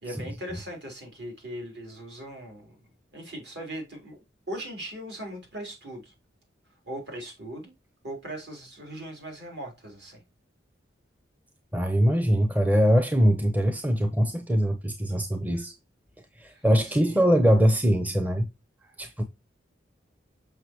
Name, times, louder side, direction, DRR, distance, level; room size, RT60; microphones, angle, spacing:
voice 1, 0.0-2.8 3.1-4.2 4.5-6.1 6.9-7.7 8.0-10.2 16.5-16.6 17.0-17.2, right 1 dB, 60° right, 3.7 m, -39 dB
voice 2, 11.7-15.7 16.4-18.5 19.0-19.2, equal, 10° right, 0.6 m, -22 dB
6.6 x 6.0 x 3.0 m
head